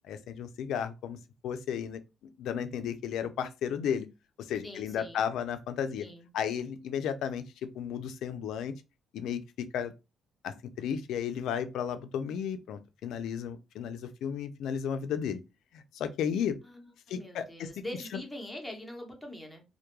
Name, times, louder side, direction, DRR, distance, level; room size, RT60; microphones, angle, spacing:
voice 1, 0.1-2.0 2.4-4.1 4.4-6.1 6.3-8.7 9.1-9.4 9.7-9.9 10.4-15.4 15.7-16.6 17.1-17.7, left 8 dB, 80° left, 0.3 m, -34 dB
voice 2, 4.6-5.3 6.0-6.3 16.6-19.6, left 1 dB, 5° left, 0.8 m, -43 dB
2.2 x 2.1 x 2.9 m
cardioid pair, 90°, 0 cm